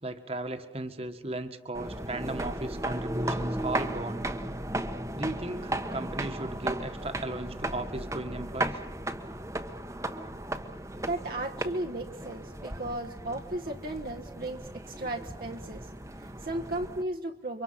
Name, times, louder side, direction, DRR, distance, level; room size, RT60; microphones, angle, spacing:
voice 1, 0.0-4.2 5.2-8.8, right 2 dB, 35° right, 7 dB, 1.7 m, -36 dB
sound 1, 1.7-17.0, right 1 dB, 15° right, 1.2 m, -35 dB
voice 2, 11.0-17.6, right 1 dB, 50° right, 2 dB, 1.3 m, -35 dB
29.5 x 25.0 x 5.8 m, 0.86 s
head